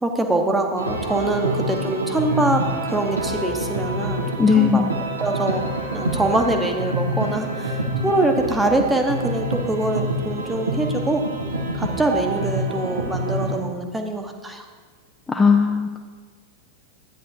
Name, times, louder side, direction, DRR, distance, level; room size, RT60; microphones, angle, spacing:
voice 1, 0.0-2.6 2.9-4.8 5.2-5.6 5.9-11.2 11.8-14.6, right 2 dB, 10° right, 4 dB, 1.0 m, -24 dB
sound 1, 0.8-13.6, right 1 dB, 80° right, 1.0 m, -26 dB
voice 2, 4.4-4.9 15.3-16.0, left 6 dB, 15° left, 1 dB, 0.5 m, -17 dB
11.5 x 9.4 x 2.7 m, 1.5 s
figure-of-eight pair, 90°, 0 cm